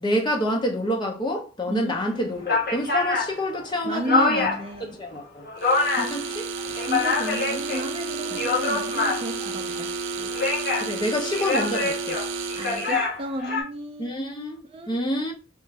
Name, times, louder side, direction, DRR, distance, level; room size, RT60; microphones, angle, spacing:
voice 1, 0.0-4.5 5.0-5.4 6.0-6.5 8.3-8.4 10.8-12.2 14.0-14.6 14.9-15.3, equal, 25° left, 0.6 m, -27 dB
voice 2, 1.7-2.0 3.8-5.0 6.9-9.9 12.5-14.2 14.7-15.0, right 1 dB, 30° right, 0.5 m, -32 dB
sound 1, 2.0-2.1 2.4-4.7 5.1-6.2 6.6-7.8 8.2-9.5 10.2-10.9 11.3-13.6, left 3 dB, 55° left, 1.7 m, -25 dB
sound 2, 5.6-13.1, right 4 dB, 90° right, 0.5 m, -31 dB
4.4 x 2.5 x 3.2 m
head